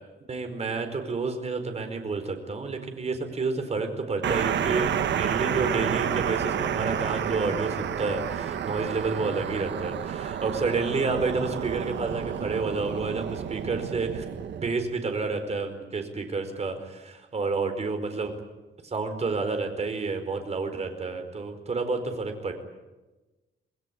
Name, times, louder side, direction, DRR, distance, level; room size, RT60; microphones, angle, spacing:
voice 1, 0.3-14.2 14.5-18.3 18.8-22.5, right 4 dB, 35° right, 6 dB, 4.6 m, -30 dB
sound 1, 4.2-14.7, right 8 dB, 70° right, 1.6 m, -30 dB
27.0 x 20.0 x 9.4 m, 1.1 s
cardioid pair, 140°, 19 cm